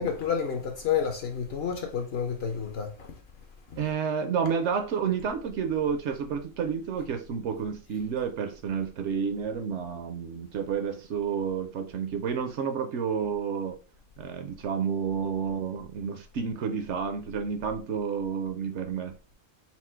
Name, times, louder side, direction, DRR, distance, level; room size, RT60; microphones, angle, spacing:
voice 1, 0.0-3.2 3.7-3.9, left 7 dB, 55° left, 0.8 m, -30 dB
voice 2, 3.8-13.8 14.2-19.3, right 6 dB, 65° right, 0.8 m, -30 dB
4.3 x 2.0 x 4.3 m
omnidirectional pair, 1.4 m